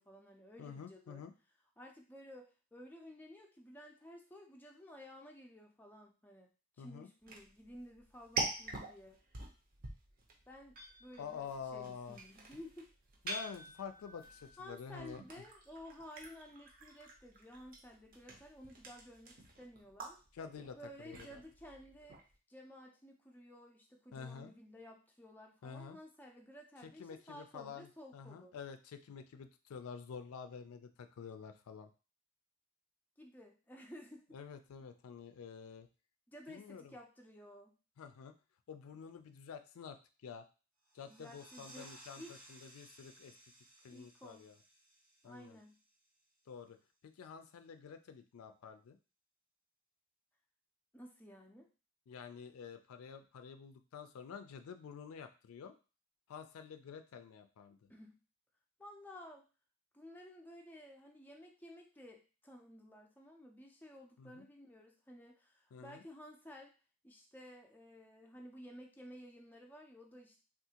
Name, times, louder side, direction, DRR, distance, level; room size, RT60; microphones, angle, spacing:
voice 1, 0.0-1.2 1.8-6.5 6.8-9.2 10.5-12.9 14.6-20.2 20.7-22.2 22.5-28.5 33.2-34.3 36.3-37.8 41.1-41.9 42.2-42.4 43.9-44.5 45.2-45.8 50.9-51.7 57.9-58.2 58.8-59.4 59.9-66.7 67.0-70.4, equal, 10° left, 1 dB, 0.4 m, -54 dB
voice 2, 0.6-1.3 6.8-7.1 11.2-12.2 13.2-15.2 20.3-21.4 24.1-24.5 25.6-26.0 26.8-31.9 34.3-35.9 36.5-36.9 38.0-38.3 38.7-40.4 40.9-43.3 43.8-44.6 45.2-45.6 46.5-46.8 47.0-49.0 52.1-55.7 56.3-57.8 64.2-64.4 65.7-66.0, left 6 dB, 85° left, 9 dB, 0.4 m, -49 dB
sound 1, 7.2-22.3, right 2 dB, 40° right, 0.6 m, -46 dB
sound 2, 40.8-46.2, right 1 dB, 80° right, 0.9 m, -59 dB
3.5 x 2.4 x 2.8 m, 0.34 s
head